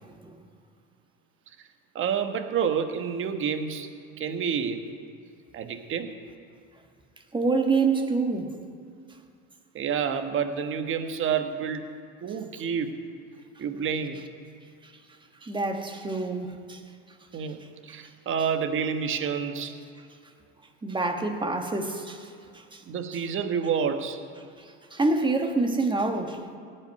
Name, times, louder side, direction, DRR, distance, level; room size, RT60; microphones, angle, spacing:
voice 1, 0.0-0.4 7.3-8.5 15.4-16.8 20.8-22.8 24.6-26.4, right 3 dB, 15° right, 1.4 m, -27 dB
voice 2, 1.9-3.9 4.2-4.8 5.5-6.1 9.7-11.8 12.2-12.9 13.6-14.2 17.3-19.7 22.9-24.2, right 7 dB, 40° right, 1.2 m, -28 dB
16.0 x 5.4 x 9.4 m
supercardioid pair, 95°, 32 cm